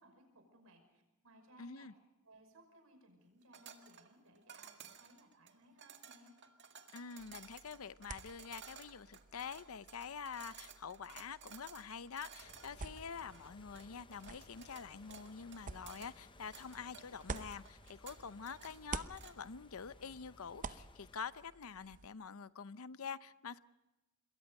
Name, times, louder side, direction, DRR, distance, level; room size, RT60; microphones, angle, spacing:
voice 1, 0.0-1.9 2.2-6.3, right 1 dB, 75° right, 5.7 m, -63 dB
voice 2, 1.6-1.9 6.9-23.6, left 6 dB, 75° left, 0.7 m, -47 dB
sound 1, 3.5-19.5, right 7 dB, 55° right, 1.9 m, -56 dB
sound 2, 7.2-18.4 18.7-22.1, right 4 dB, 40° right, 0.8 m, -51 dB
sound 3, 12.4-21.2, left 2 dB, 25° left, 0.7 m, -61 dB
26.5 x 22.0 x 5.4 m
head